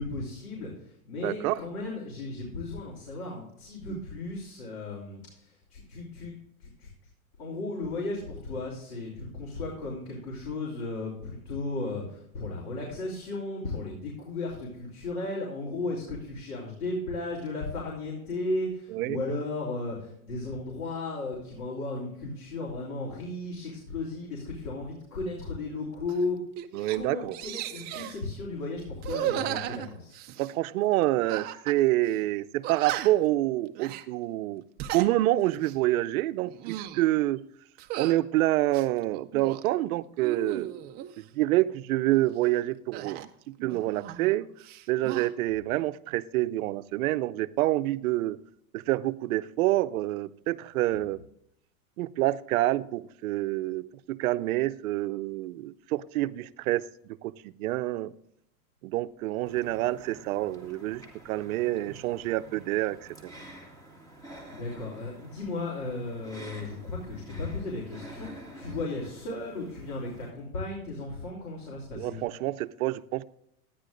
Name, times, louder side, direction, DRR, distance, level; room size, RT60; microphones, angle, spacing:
voice 1, 0.0-6.9 7.4-26.4 26.9-30.2 64.4-72.2, left 2 dB, 80° left, -2 dB, 3.2 m, -35 dB
voice 2, 1.2-1.6 3.9-4.0 18.9-19.2 26.7-27.4 30.4-34.6 34.9-37.4 38.0-40.8 41.2-44.5 44.9-48.4 48.7-51.2 52.0-58.1 58.8-63.3 72.0-73.2, right 16 dB, 70° right, 15 dB, 0.6 m, -27 dB
sound 1, 26.1-26.2 26.6-27.0 27.3-28.2 29.0-30.5 31.3-31.8 32.1-32.2 32.6-33.3 33.8-34.1 34.6-35.1 35.5-35.8 36.4-37.0 37.8-38.2 38.7-39.7 40.2-41.1 42.9-44.3 44.6-45.3, right 12 dB, 25° right, 0.3 m, -36 dB
sound 2, 59.5-70.3, right 1 dB, 10° left, 2.0 m, -49 dB
13.5 x 9.9 x 2.5 m, 0.74 s
supercardioid pair, 125°, 44 cm